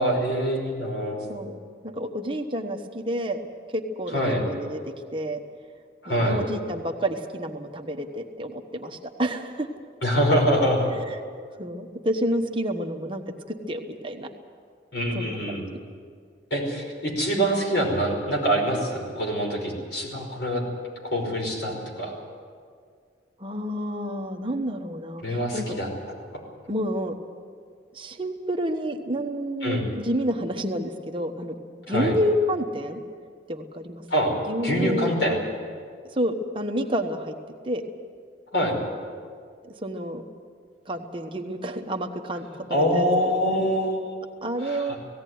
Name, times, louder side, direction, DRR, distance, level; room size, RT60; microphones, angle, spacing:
voice 1, 0.0-1.2 4.1-4.4 6.0-6.4 10.0-10.9 14.9-15.6 16.5-20.6 21.0-22.1 25.2-25.9 29.6-29.8 31.9-32.1 34.1-34.4 34.6-35.4 38.5-38.8 42.7-45.0, equal, 75° left, 0 dB, 5.4 m, -25 dB
voice 2, 1.3-3.4 3.7-5.4 6.1-9.7 11.6-14.3 15.1-15.6 23.4-25.7 26.7-27.1 27.9-33.0 33.5-34.0 34.5-35.4 36.1-37.3 37.6-37.8 39.7-40.2 40.8-43.0 44.4-44.9, equal, 30° right, 4 dB, 1.2 m, -29 dB
18.0 x 16.5 x 9.4 m, 2.1 s
head